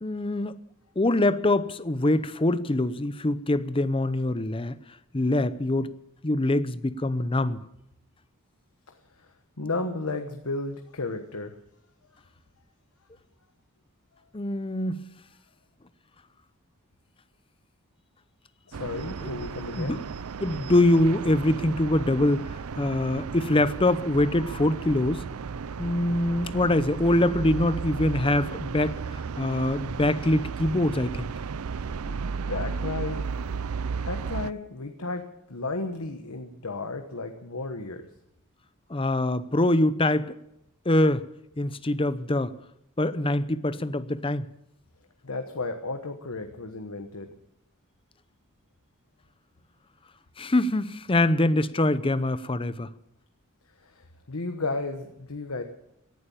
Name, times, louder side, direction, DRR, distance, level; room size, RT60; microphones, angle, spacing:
voice 1, 0.0-0.6 1.0-4.8 5.1-5.9 6.2-7.7 14.3-15.1 19.7-20.0 20.4-25.3 25.8-31.3 38.9-40.3 40.8-41.2 41.6-42.5 43.0-44.4 50.4-52.9, left 1 dB, 25° left, 14 dB, 0.7 m, -24 dB
voice 2, 8.9-11.6 18.7-20.0 32.0-33.3 33.9-38.1 45.2-47.3 53.8-55.6, left 3 dB, 85° left, 6 dB, 1.3 m, -34 dB
sound 1, 18.7-34.5, right 5 dB, 90° right, 0.5 m, -34 dB
18.0 x 11.5 x 7.2 m, 0.81 s
head